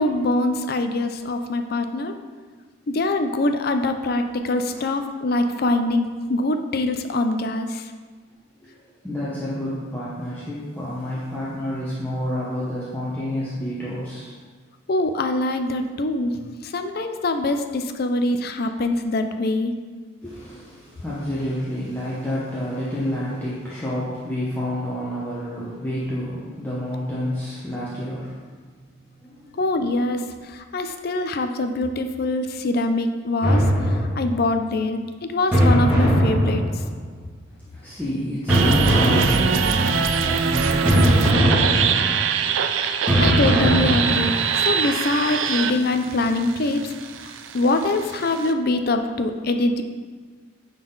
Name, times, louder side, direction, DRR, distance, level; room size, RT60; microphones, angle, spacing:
voice 1, 0.0-2.1 2.9-7.8 14.9-19.7 29.6-30.2 30.7-33.6 34.2-36.6 43.2-46.9 47.5-49.8, left 2 dB, 50° left, 7 dB, 0.5 m, -23 dB
voice 2, 8.6-14.4 20.2-28.4 29.2-29.6 37.5-41.8, left 1 dB, 10° left, -9 dB, 1.0 m, -29 dB
sound 1, 33.4-34.4 35.5-37.1 38.5-39.9 40.9-42.3 43.1-44.5, equal, 10° right, 2.0 m, -20 dB
sound 2, 38.5-48.5, right 6 dB, 75° right, 0.4 m, -23 dB
9.4 x 4.1 x 3.9 m, 1.5 s
head